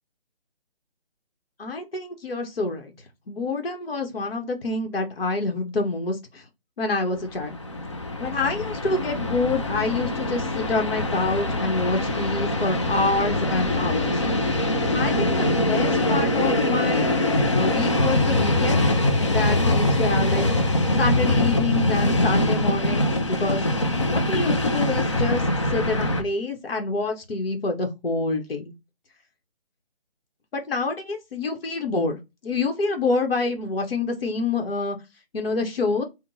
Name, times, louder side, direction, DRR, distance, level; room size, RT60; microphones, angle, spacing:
voice 1, 1.6-2.9 3.3-6.4 6.8-7.6 8.2-14.2 14.9-17.1 17.5-18.8 19.3-20.5 21.0-23.6 24.1-28.7 30.5-32.2 32.4-35.0 35.3-36.0, left 3 dB, 65° left, 0.9 m, -27 dB
Train, 7.3-26.2, left 1 dB, 30° left, 0.4 m, -23 dB
3.5 x 2.1 x 2.6 m
figure-of-eight pair, 150°, 31 cm